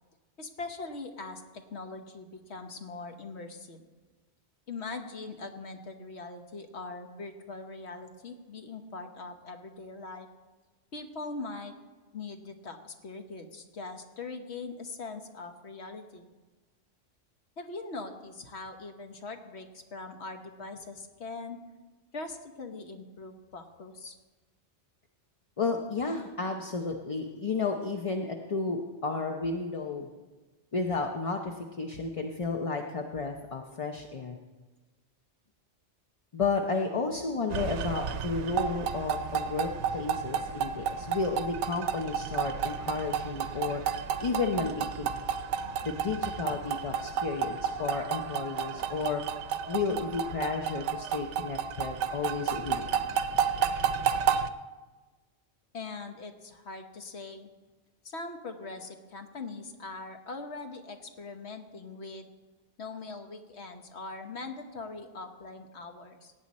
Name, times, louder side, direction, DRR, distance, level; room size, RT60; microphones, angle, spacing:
voice 1, 0.4-1.4 1.7-3.8 4.7-10.3 10.9-11.7 12.1-16.3 17.6-21.6 22.1-24.2 55.7-57.5 58.0-62.3 62.8-66.3, left 3 dB, 70° left, 6 dB, 1.3 m, -41 dB
voice 2, 25.6-30.1 30.7-34.4 36.3-43.8 44.2-45.1 45.8-49.2 49.7-53.0, left 4 dB, 35° left, 2 dB, 0.6 m, -32 dB
sound 1, 37.5-54.5, right 7 dB, 80° right, 0.9 m, -31 dB
17.5 x 8.8 x 4.2 m, 1.3 s
omnidirectional pair, 1.2 m